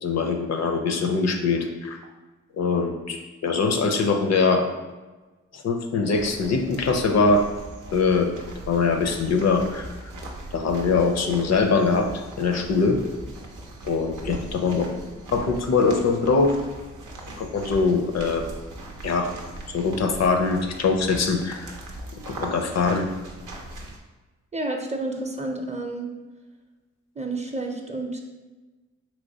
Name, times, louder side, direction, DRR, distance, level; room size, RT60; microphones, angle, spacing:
voice 1, 0.0-2.0 2.6-4.7 5.5-7.4 7.9-8.3 8.7-10.1 10.5-13.0 13.8-14.9 15.3-16.5 17.4-18.4 19.0-19.3 19.7-21.7 22.4-23.1, left 4 dB, 60° left, 5 dB, 0.5 m, -22 dB
sound 1, 6.1-24.0, right 1 dB, 90° right, 0.6 m, -40 dB
voice 2, 24.5-26.1 27.2-28.2, right 2 dB, 20° right, 2 dB, 0.5 m, -30 dB
3.1 x 3.0 x 2.7 m, 1.2 s
supercardioid pair, 45°, 30 cm